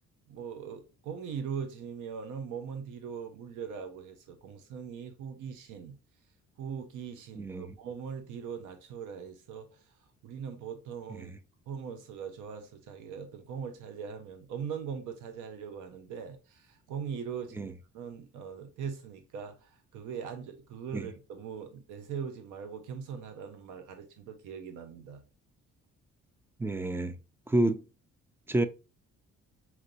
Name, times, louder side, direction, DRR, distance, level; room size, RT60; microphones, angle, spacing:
voice 1, 0.3-6.0 6.6-9.8 10.2-11.3 11.7-25.2, right 7 dB, 90° right, 0.8 m, -41 dB
voice 2, 7.4-7.7 11.3-11.4 17.6-17.7 20.9-21.1 26.6-27.2 27.5-27.8 28.5-28.7, right 1 dB, 10° right, 0.5 m, -29 dB
4.4 x 3.9 x 2.8 m
cardioid pair, 90°, 30 cm